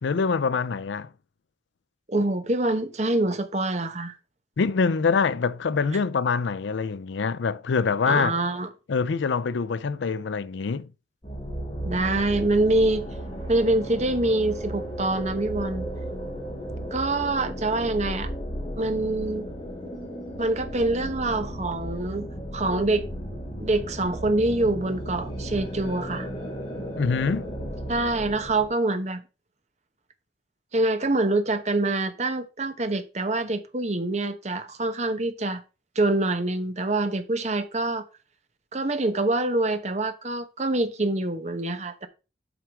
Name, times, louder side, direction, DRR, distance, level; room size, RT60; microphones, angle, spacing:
voice 1, 0.0-1.1 4.6-8.3 8.9-10.9 27.0-27.5, left 5 dB, 80° left, 0.5 m, -25 dB
voice 2, 2.1-4.2 8.1-8.7 11.8-13.1 13.5-15.8 16.9-18.3 18.8-19.5 20.4-22.3 22.5-23.1 23.6-26.3 27.9-29.2 30.7-35.6 35.9-38.0 38.7-42.1, right 2 dB, 40° right, 1.0 m, -25 dB
sound 1, 11.2-28.7, equal, 25° left, 3.9 m, -34 dB
8.0 x 5.8 x 4.6 m
head